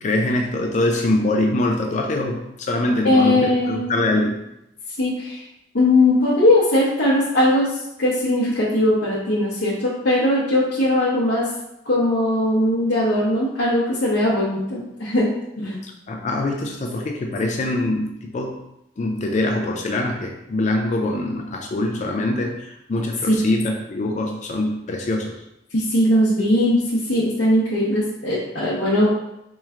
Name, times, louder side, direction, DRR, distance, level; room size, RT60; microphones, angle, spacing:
voice 1, 0.0-4.3 15.8-18.6 19.0-25.4, left 2 dB, 40° left, 3 dB, 0.4 m, -23 dB
voice 2, 3.0-3.9 5.0-5.4 5.7-11.5 11.9-15.3 15.6-15.8 23.2-23.4 25.7-29.1, left 1 dB, 80° left, -7 dB, 0.7 m, -19 dB
4.3 x 3.0 x 2.4 m, 0.86 s
head